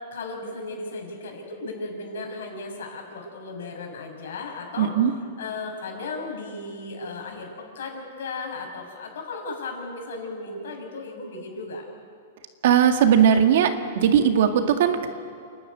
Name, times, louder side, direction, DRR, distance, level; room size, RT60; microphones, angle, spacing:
voice 1, 0.1-4.9 5.4-11.9, left 3 dB, 80° left, 1 dB, 6.2 m, -35 dB
voice 2, 4.8-5.1 12.6-15.1, right 8 dB, 65° right, 6 dB, 1.9 m, -19 dB
28.5 x 11.5 x 9.6 m, 2.3 s
hypercardioid pair, 150°, 0 cm